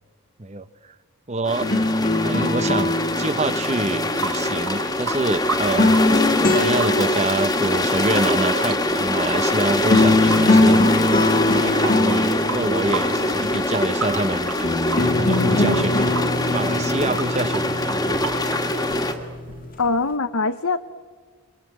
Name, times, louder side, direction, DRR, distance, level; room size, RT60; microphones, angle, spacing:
voice 1, 1.3-1.7 2.0-6.0 6.4-10.8 11.5-14.8 15.0-16.2 16.5-18.3, right 2 dB, 30° right, 15 dB, 0.8 m, -26 dB
sound 1, 1.5-19.1, left 1 dB, 15° left, 1.9 m, -23 dB
sound 2, 1.6-4.9 5.5-7.7 9.5-9.6 9.9-13.6 14.6-19.6, left 2 dB, 40° left, 1.8 m, -22 dB
Water tap faucet / Sink (filling or washing) / Drip, 3.9-19.9, right 4 dB, 85° right, 6.4 m, -34 dB
voice 2, 19.8-20.8, left 3 dB, 70° left, 10 dB, 0.9 m, -22 dB
28.0 x 24.0 x 8.6 m, 1.5 s
head